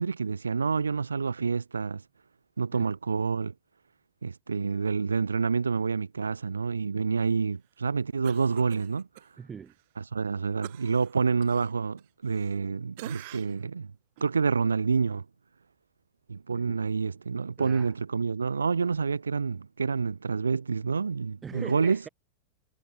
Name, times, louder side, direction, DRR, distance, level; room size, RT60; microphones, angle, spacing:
voice 1, 0.0-2.0 2.6-3.5 4.2-9.1 10.0-13.9 14.2-15.2 16.3-22.0, right 5 dB, 75° right, 0.8 m, -28 dB
Cough, 8.2-9.3 9.7-9.8 10.6-12.7 13.0-13.7 14.2-14.3, right 20 dB, 50° right, 3.3 m, -46 dB
voice 2, 9.4-9.7 16.5-16.8 17.6-17.9 21.4-22.1, right 6 dB, 20° right, 1.9 m, -42 dB
figure-of-eight pair, 90°, 0 cm